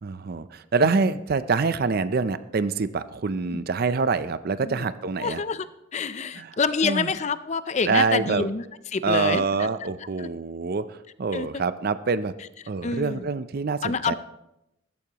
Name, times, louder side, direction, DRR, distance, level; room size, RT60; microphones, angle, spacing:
voice 1, 0.0-5.4 6.4-6.5 6.8-7.1 7.9-8.5 9.0-12.3 12.7-14.1, right 4 dB, 50° right, 13 dB, 0.5 m, -25 dB
voice 2, 0.8-1.2 3.5-3.7 4.6-4.9 5.2-5.7 5.9-9.7 10.0-10.3 11.3-11.6 12.8-13.3 13.8-14.1, left 5 dB, 35° left, 14 dB, 0.5 m, -28 dB
14.0 x 14.0 x 3.0 m, 0.88 s
head